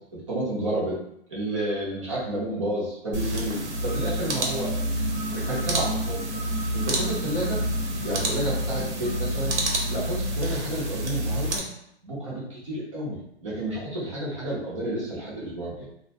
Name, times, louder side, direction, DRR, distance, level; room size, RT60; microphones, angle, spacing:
voice 1, 0.1-1.0 1.3-5.1 5.3-6.2 6.7-7.6 8.0-9.5 9.9-11.7 12.0-15.9, right 1 dB, 25° right, -6 dB, 0.7 m, -31 dB
sound 1, 3.1-11.6, right 1 dB, 90° right, 0.9 m, -28 dB
sound 2, 3.5-10.3, equal, 60° left, 0.7 m, -37 dB
2.6 x 2.1 x 2.8 m, 0.75 s
hypercardioid pair, 175°, 34 cm